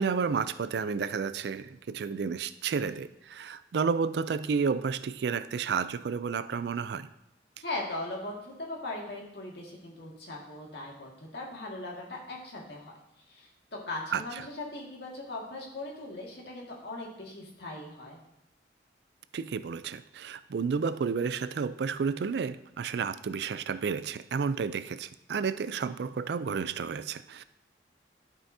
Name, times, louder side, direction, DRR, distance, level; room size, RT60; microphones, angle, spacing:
voice 1, 0.0-7.1 14.1-14.2 19.3-27.4, right 5 dB, 70° right, 14 dB, 0.3 m, -31 dB
voice 2, 7.6-12.9 13.3-18.2, left 2 dB, 65° left, -2 dB, 1.9 m, -39 dB
11.5 x 5.6 x 2.7 m, 0.86 s
head